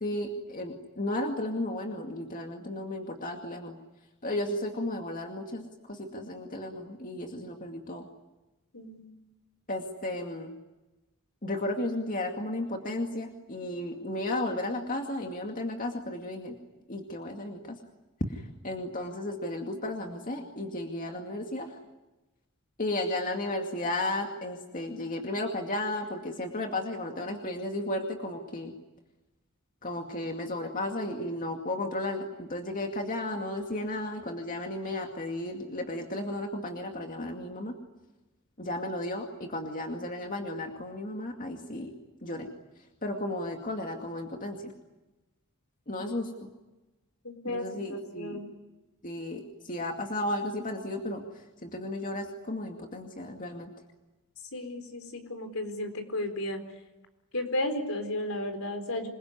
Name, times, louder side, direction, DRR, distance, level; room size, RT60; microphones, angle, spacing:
voice 1, 0.0-3.8 4.2-8.0 9.7-10.5 11.4-16.6 16.9-17.8 18.3-21.8 22.8-28.7 29.8-37.8 38.6-41.9 42.2-42.5 43.0-44.7 45.9-46.5 47.4-48.4 49.0-53.7, left 1 dB, 40° left, 3 dB, 2.3 m, -34 dB
voice 2, 8.7-9.1 47.2-48.5 54.5-56.6 57.3-59.1, left 1 dB, 70° left, 7 dB, 4.3 m, -34 dB
27.0 x 22.0 x 9.8 m, 1.1 s
head